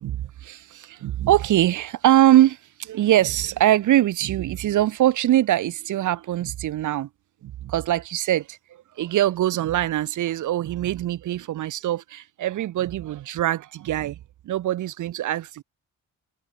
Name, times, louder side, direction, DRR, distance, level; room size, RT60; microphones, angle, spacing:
voice 1, 0.0-7.1 7.4-8.6 9.0-14.2 14.4-15.6, right 13 dB, 70° right, 0.9 m, -22 dB
cardioid pair, 110°, 32 cm